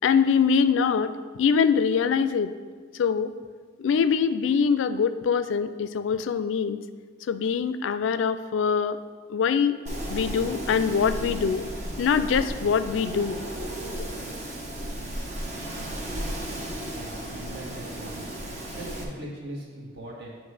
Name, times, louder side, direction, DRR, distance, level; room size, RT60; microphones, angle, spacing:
voice 1, 0.0-1.1 1.4-2.5 2.9-3.3 3.8-6.8 7.3-9.0 9.3-9.8 10.1-11.7 12.0-13.4 14.0-14.1, left 6 dB, 80° left, 12 dB, 0.3 m, -23 dB
Wind, 9.9-19.0, right 1 dB, 40° right, 1.0 m, -34 dB
voice 2, 16.8-18.3 18.6-20.3, right 1 dB, 60° right, -4 dB, 1.5 m, -40 dB
9.1 x 3.1 x 4.8 m, 1.5 s
head